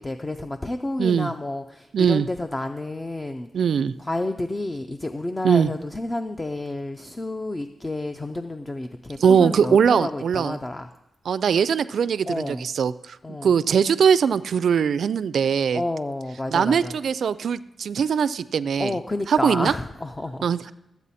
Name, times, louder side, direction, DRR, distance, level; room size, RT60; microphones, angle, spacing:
voice 1, 0.0-3.5 4.0-10.9 12.2-12.7 13.2-13.5 15.7-16.9 18.8-20.7, left 2 dB, 20° left, 8 dB, 0.4 m, -30 dB
voice 2, 1.0-1.3 1.9-2.3 3.5-3.9 5.4-5.7 9.2-10.6 11.3-13.2 13.4-15.8 16.5-19.0 19.3-19.7 20.4-20.7, right 7 dB, 70° right, 16 dB, 0.3 m, -21 dB
14.0 x 8.1 x 4.2 m, 0.91 s
wide cardioid pair, 130°, 0 cm